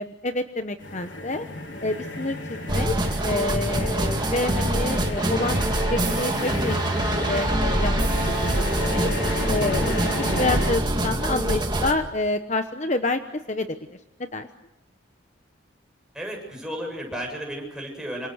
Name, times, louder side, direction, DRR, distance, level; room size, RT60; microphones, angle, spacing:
voice 1, 0.0-1.5 1.8-2.9 3.2-6.8 7.1-9.1 9.5-13.2 13.5-13.8 14.3-14.5, left 2 dB, 35° left, 8 dB, 1.0 m, -28 dB
sound 1, 0.8-10.7, left 1 dB, 65° left, 4.2 m, -32 dB
sound 2, 2.7-11.9, right 1 dB, 20° right, 2.2 m, -25 dB
voice 2, 16.1-18.3, equal, 5° right, 0 dB, 7.7 m, -33 dB
28.0 x 26.5 x 6.5 m, 0.93 s
head